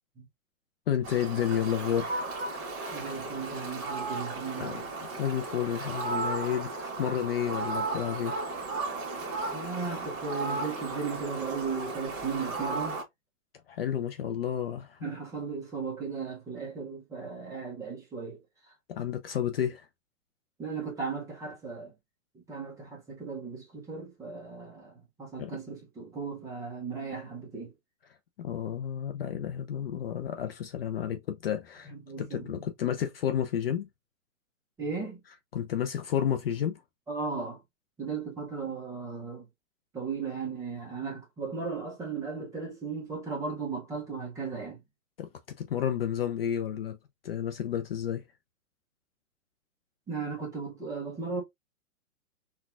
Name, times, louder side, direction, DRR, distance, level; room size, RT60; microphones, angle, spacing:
voice 1, 0.9-2.3 4.6-4.8 5.1-8.4 13.7-15.1 18.9-19.9 25.4-25.6 28.4-31.9 32.2-33.9 35.5-36.8 45.2-45.3 45.6-47.0 47.2-48.2, left 9 dB, 45° left, 0.4 m, -31 dB
Fowl, 1.0-13.0, right 3 dB, 30° right, 1.2 m, -35 dB
voice 2, 2.9-4.9 9.5-13.0 15.0-18.7 20.6-21.9 22.3-27.7 31.8-32.6 34.8-35.2 37.1-37.6 38.0-39.5 39.9-44.8 50.1-51.4, right 5 dB, 10° right, 0.6 m, -36 dB
4.0 x 2.3 x 2.4 m
hypercardioid pair, 145°, 42 cm